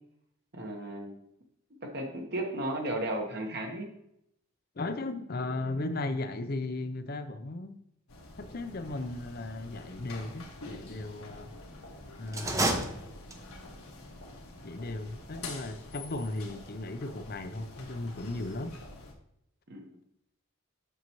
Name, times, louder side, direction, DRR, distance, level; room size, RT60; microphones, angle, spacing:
voice 1, 0.5-1.2 1.8-3.9 19.7-20.0, right 1 dB, 50° right, 1.3 m, -34 dB
voice 2, 4.8-7.8 8.4-11.5 12.2-13.1 14.6-18.8, left 2 dB, 45° left, 0.6 m, -36 dB
sound 1, 8.1-19.1, left 2 dB, 80° left, 1.6 m, -47 dB
sound 2, 12.3-13.7, right 2 dB, 15° right, 0.7 m, -30 dB
7.7 x 6.8 x 3.0 m
head